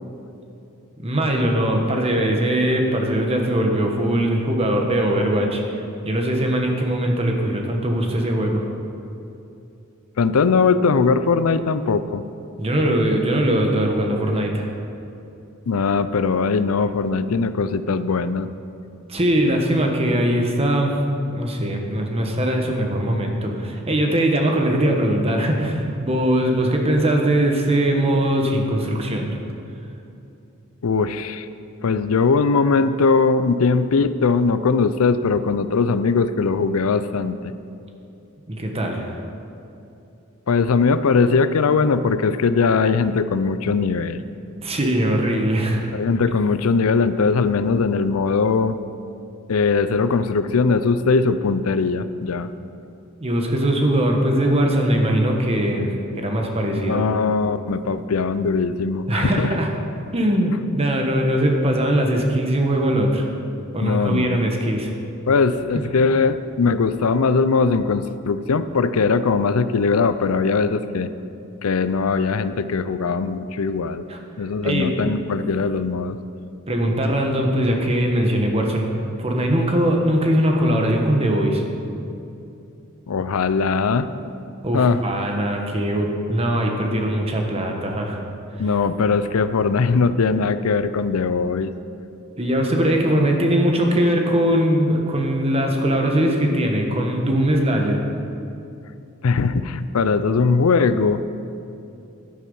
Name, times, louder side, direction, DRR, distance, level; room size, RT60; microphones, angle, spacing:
voice 1, 1.0-5.8 6.0-8.6 12.6-14.7 19.1-21.0 21.3-29.4 38.5-39.2 44.6-45.8 53.2-55.9 56.2-57.1 59.1-59.7 60.1-63.2 63.7-64.9 74.1-74.2 74.6-74.9 76.7-78.9 79.2-81.6 84.6-88.2 92.4-98.0, right 1 dB, 30° right, 2 dB, 1.3 m, -21 dB
voice 2, 10.2-12.2 15.7-18.5 30.8-31.5 31.8-37.5 40.5-44.2 45.9-48.8 49.5-52.5 56.8-59.5 63.8-64.4 65.3-71.1 71.6-74.1 74.4-76.2 83.1-84.1 84.7-85.0 88.6-91.7 99.2-101.2, left 4 dB, 85° left, 13 dB, 0.5 m, -20 dB
11.0 x 10.0 x 5.5 m, 2.7 s
head